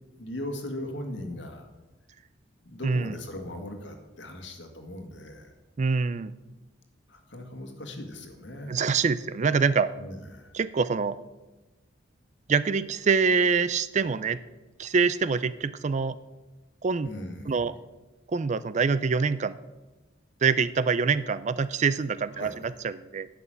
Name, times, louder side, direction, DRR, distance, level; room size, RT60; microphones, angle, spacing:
voice 1, 0.1-1.7 2.6-5.5 7.1-8.8 10.0-10.5 17.0-17.6 22.4-22.6, left 1 dB, 65° left, 4 dB, 1.9 m, -39 dB
voice 2, 2.8-3.2 5.8-6.3 8.7-9.9 10.5-11.2 12.5-14.4 14.8-16.2 16.8-17.1 17.5-17.7 18.3-19.6 20.4-23.3, right 5 dB, 35° right, 15 dB, 0.4 m, -25 dB
11.0 x 6.1 x 8.9 m, 1.1 s
head